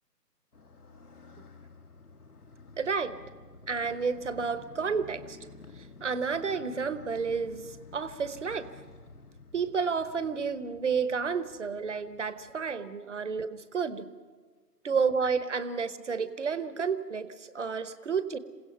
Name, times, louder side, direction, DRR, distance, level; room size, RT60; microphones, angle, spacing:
Motorcycle, 0.5-12.7, left 3 dB, 60° left, 1.8 m, -51 dB
voice 1, 2.8-3.1 3.7-5.4 5.8-8.7 9.5-14.1 14.8-18.4, right 5 dB, 45° right, 14 dB, 1.0 m, -31 dB
27.5 x 17.0 x 5.6 m, 1.4 s
figure-of-eight pair, 145°, 50 cm